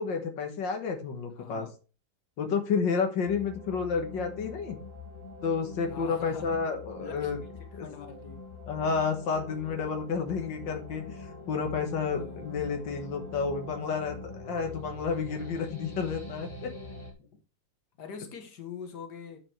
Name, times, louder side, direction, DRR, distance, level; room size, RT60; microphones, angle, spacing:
voice 1, 0.0-1.7 2.4-4.8 5.4-7.4 7.7-7.9 8.6-16.7, left 5 dB, 90° left, 4 dB, 2.0 m, -31 dB
voice 2, 1.4-1.7 5.9-6.6 7.0-7.5 7.8-8.4 12.1-12.5 17.2-17.3 18.0-19.4, left 6 dB, 65° left, 5 dB, 2.1 m, -43 dB
sound 1, 3.2-17.1, left 3 dB, 15° left, 1.5 m, -44 dB
9.4 x 5.2 x 4.6 m, 0.34 s
omnidirectional pair, 1.9 m